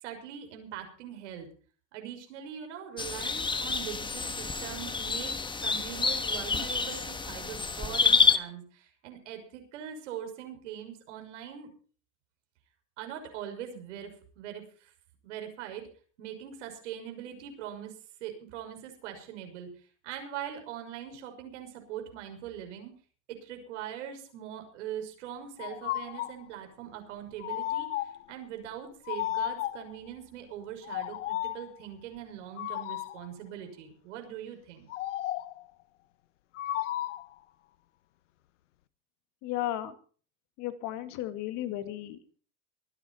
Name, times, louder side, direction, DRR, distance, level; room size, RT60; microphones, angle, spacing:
voice 1, 0.0-1.5 1.9-5.3 5.6-11.7 13.0-14.9 15.2-15.9 16.2-22.9 23.3-34.9, right 10 dB, 75° right, 5 dB, 6.1 m, -42 dB
sound 1, 3.0-8.4, left 4 dB, 15° left, 1.5 m, -28 dB
sound 2, 25.6-26.4 27.4-28.3 29.1-30.0 30.8-31.7 32.6-33.3 34.9-35.6 36.6-37.3, left 14 dB, 80° left, 1.2 m, -34 dB
voice 2, 39.4-39.9 40.6-42.4, left 13 dB, 50° left, 10 dB, 2.2 m, -34 dB
24.0 x 10.0 x 4.4 m, 0.41 s
hypercardioid pair, 105°, 36 cm